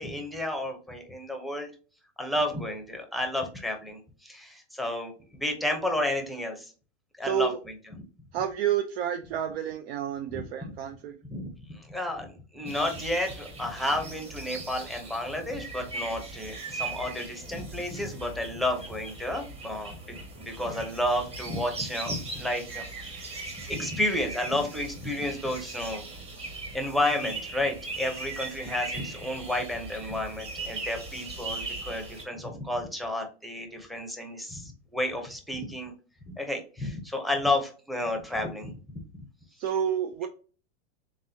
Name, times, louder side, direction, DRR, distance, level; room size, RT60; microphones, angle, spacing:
voice 1, 0.0-1.7 2.2-6.7 7.2-7.7 10.3-10.5 11.2-20.2 20.6-26.1 26.7-35.9 36.3-39.3, left 1 dB, ahead, 3 dB, 0.7 m, -31 dB
voice 2, 7.2-7.6 8.3-11.1 39.6-40.3, right 9 dB, 65° right, 6 dB, 0.6 m, -29 dB
sound 1, 12.7-32.2, right 3 dB, 20° right, 1.0 m, -39 dB
4.0 x 3.6 x 2.7 m, 0.37 s
hypercardioid pair, 135°, 34 cm